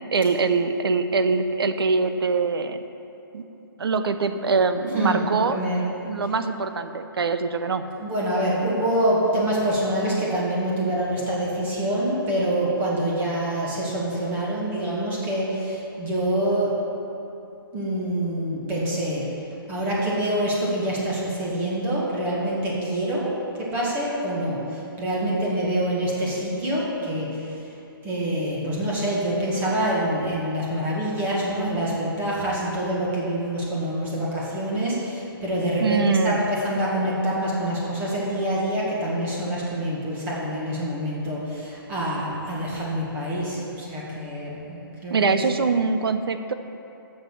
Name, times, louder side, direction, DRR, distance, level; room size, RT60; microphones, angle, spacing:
voice 1, 0.1-2.8 3.3-3.4 3.8-5.6 6.0-7.8 35.8-36.4 45.1-46.5, right 4 dB, 80° right, 9 dB, 0.8 m, -23 dB
voice 2, 4.9-5.8 8.0-16.8 17.7-19.3 19.7-23.3 23.6-27.6 28.0-45.4, right 1 dB, 15° right, -6 dB, 1.9 m, -26 dB
8.9 x 6.7 x 7.2 m, 2.9 s
hypercardioid pair, 160°, 12 cm